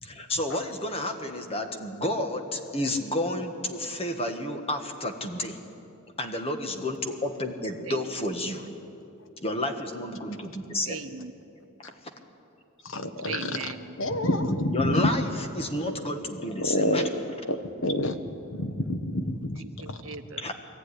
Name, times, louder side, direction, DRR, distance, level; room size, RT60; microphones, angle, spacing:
voice 1, 0.0-5.6 6.2-8.7 9.4-11.0 14.7-15.2 15.5-17.2 20.4-20.5, left 1 dB, 25° left, 5 dB, 1.5 m, -31 dB
voice 2, 7.8-8.3 10.8-11.3 13.2-14.0 19.6-20.4, right 5 dB, 70° right, 9 dB, 1.0 m, -39 dB
voice 3, 12.8-13.7 14.0-15.1 15.9-16.0 16.6-17.1 17.5-18.2 18.5-20.0, left 1 dB, 60° left, 8 dB, 1.3 m, -28 dB
22.5 x 14.0 x 9.9 m, 2.7 s
head